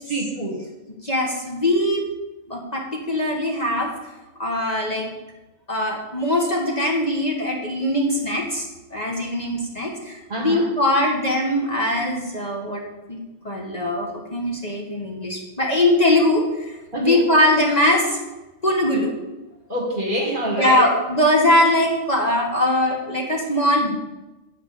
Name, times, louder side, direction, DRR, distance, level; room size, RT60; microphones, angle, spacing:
voice 1, 0.1-0.6 10.3-10.7 16.9-17.2 19.7-20.8, right 1 dB, 40° right, 0 dB, 1.9 m, -25 dB
voice 2, 1.0-2.1 2.5-3.9 4.4-5.1 5.7-12.8 13.1-18.2 18.6-19.1 20.6-24.0, left 1 dB, 35° left, -1 dB, 1.4 m, -21 dB
8.9 x 4.9 x 7.5 m, 1.1 s
omnidirectional pair, 1.3 m